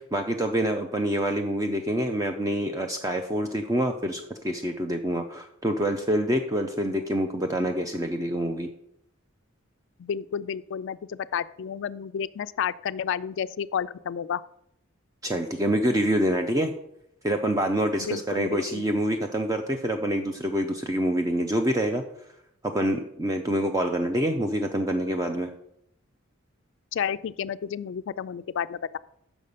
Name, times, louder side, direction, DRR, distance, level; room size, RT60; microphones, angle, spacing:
voice 1, 0.0-8.7 15.2-16.7 17.2-22.0 22.6-25.5, right 1 dB, 15° right, 5 dB, 0.5 m, -26 dB
voice 2, 10.0-14.4 18.1-18.8 26.9-29.0, left 8 dB, 60° left, 15 dB, 0.3 m, -31 dB
6.1 x 5.4 x 6.6 m, 0.75 s
head